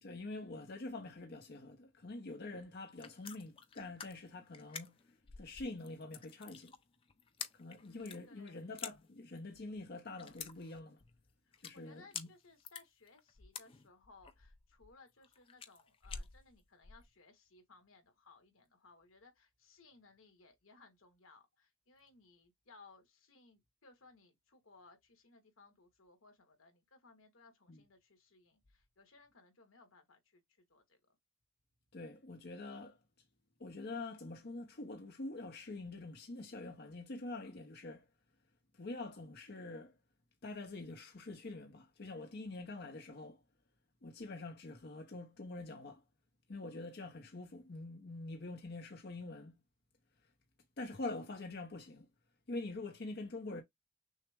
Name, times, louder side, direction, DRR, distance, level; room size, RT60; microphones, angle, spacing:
voice 1, 0.0-5.0 5.4-6.7 7.5-11.0 11.6-12.3 27.7-27.8 31.9-33.0 33.6-38.1 38.8-39.9 40.4-43.4 44.0-46.0 46.5-49.5 50.8-52.1 52.5-53.6, left 2 dB, 50° left, 0.8 m, -45 dB
sound 1, 2.7-17.1, left 7 dB, 25° left, 0.4 m, -49 dB
voice 2, 7.8-8.7 11.4-31.2, left 3 dB, 85° left, 1.4 m, -63 dB
6.3 x 2.1 x 3.4 m
head